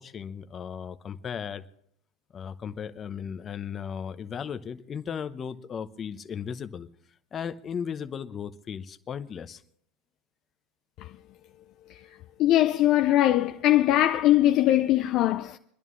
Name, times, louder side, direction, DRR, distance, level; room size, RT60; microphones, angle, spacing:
voice 1, 0.0-1.7 2.3-6.9 7.3-9.6, left 7 dB, 30° left, 0.9 m, -36 dB
voice 2, 12.4-15.6, left 14 dB, 50° left, 0.5 m, -21 dB
27.0 x 11.0 x 3.2 m
hypercardioid pair, 110°, 0 cm